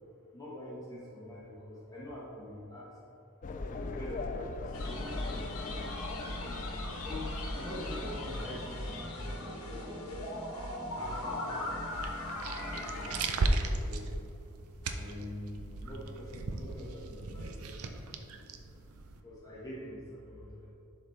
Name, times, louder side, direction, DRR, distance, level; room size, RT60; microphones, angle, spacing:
voice 1, 0.3-2.9 3.6-5.5 5.8-5.9 6.4-10.3 10.9-12.1 12.7-13.1 13.4-14.1 14.9-18.2 19.2-20.7, left 1 dB, 15° left, -7 dB, 1.3 m, -45 dB
sound 1, 3.4-9.1, left 2 dB, 35° left, 0.3 m, -40 dB
sound 2, 4.7-13.3, left 1 dB, 70° left, 1.2 m, -39 dB
sound 3, 11.9-19.2, right 2 dB, 70° right, 0.5 m, -36 dB
11.0 x 4.2 x 3.3 m, 2.8 s
head